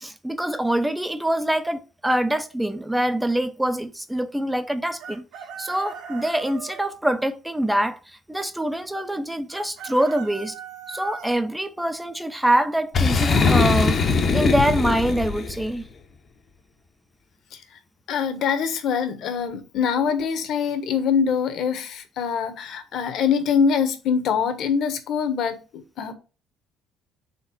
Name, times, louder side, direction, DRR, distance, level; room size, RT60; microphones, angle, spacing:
voice 1, 0.0-5.2 5.6-8.0 8.3-10.6 10.9-15.9, right 1 dB, 5° right, 0.4 m, -24 dB
Chicken rooster, 5.0-6.8 9.5-11.3, right 6 dB, 70° right, 1.3 m, -38 dB
Boom, 12.9-15.7, left 4 dB, 30° left, 0.7 m, -21 dB
voice 2, 18.1-26.1, left 6 dB, 50° left, 1.0 m, -24 dB
4.4 x 4.0 x 5.5 m
cardioid pair, 175°, 0 cm